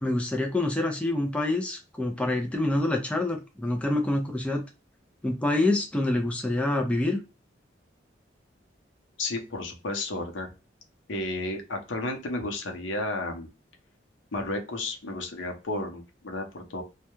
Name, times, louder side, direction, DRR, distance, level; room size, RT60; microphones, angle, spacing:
voice 1, 0.0-4.6 5.2-7.2, left 2 dB, 5° left, 2 dB, 0.3 m, -26 dB
voice 2, 9.2-10.5 11.1-13.5 14.3-16.8, left 2 dB, 90° left, 3 dB, 0.7 m, -32 dB
2.2 x 2.1 x 2.9 m, 0.29 s
head